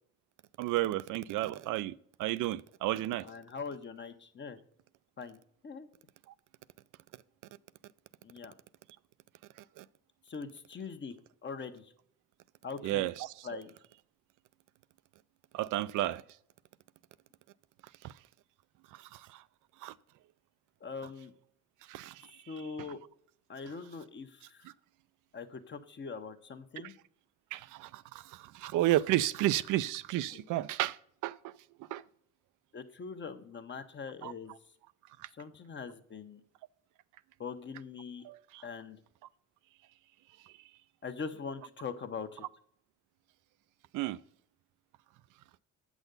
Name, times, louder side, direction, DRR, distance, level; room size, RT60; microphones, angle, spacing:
voice 1, 0.6-1.9 2.2-3.3 9.8-9.9 12.8-13.6 15.5-16.2 18.0-18.1 19.0-19.4 19.8-19.9 21.9-22.9 24.6-24.7 26.8-26.9 27.5-31.0 31.2-31.5 31.9-32.0 34.2-34.3 35.2-35.3 38.2-38.6 43.9-44.2, right 15 dB, 85° right, 0.5 m, -32 dB
voice 2, 3.2-4.6 5.2-5.4 5.6-5.9 8.2-8.5 10.3-11.1 11.4-11.9 12.6-13.1 13.4-13.7 20.8-21.3 22.5-23.0 23.5-24.6 25.3-26.9 30.3-30.4 32.7-34.5 35.4-36.4 37.4-38.2 38.6-39.0 41.0-42.4, left 5 dB, 40° left, 1.0 m, -42 dB
7.9 x 6.2 x 5.3 m
cardioid pair, 90°, 30 cm